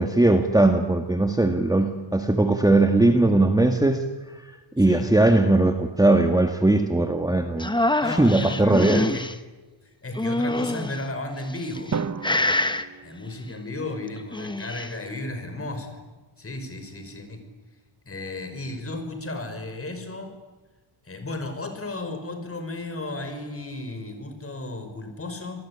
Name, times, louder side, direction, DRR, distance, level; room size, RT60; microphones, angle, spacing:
voice 1, 0.0-4.1 4.3-4.4 4.8-7.7 8.2-9.0, right 2 dB, 10° right, 5 dB, 1.7 m, -19 dB
voice 2, 4.8-5.1 8.0-9.2 10.0-12.0 13.0-16.0 16.4-17.4 18.1-20.3 21.0-25.6, left 2 dB, 30° left, 7 dB, 5.7 m, -34 dB
sound 1, 7.6-9.3 10.2-11.0 11.6-12.0 12.2-12.8 14.2-14.9, left 1 dB, 10° left, 1.3 m, -25 dB
Drum, 11.9-14.0, right 6 dB, 35° right, 1.0 m, -34 dB
28.0 x 20.0 x 9.8 m, 1.2 s
wide cardioid pair, 125°, 47 cm